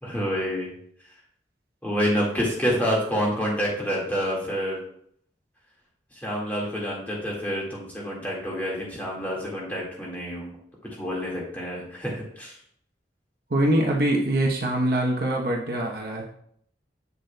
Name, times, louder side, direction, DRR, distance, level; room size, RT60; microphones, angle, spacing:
voice 1, 0.0-0.7 1.8-4.8 6.2-10.5 11.0-12.6, equal, 10° left, -4 dB, 1.8 m, -28 dB
voice 2, 13.5-16.3, right 1 dB, 55° right, -1 dB, 0.9 m, -24 dB
8.2 x 6.4 x 2.2 m, 0.66 s
head